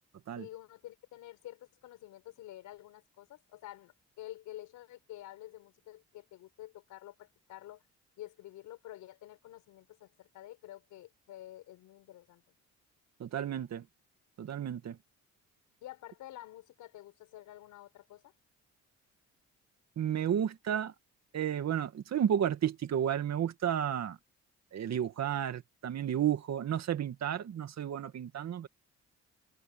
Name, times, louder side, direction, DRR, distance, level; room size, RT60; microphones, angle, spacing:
voice 1, 0.4-7.8 8.2-12.6 15.8-18.3, left 14 dB, 90° left, 6.2 m, -49 dB
voice 2, 13.2-13.9 14.4-15.0 20.0-20.9 21.3-24.2 24.7-28.7, right 9 dB, 60° right, 2.3 m, -32 dB
cardioid pair, 90°, 30 cm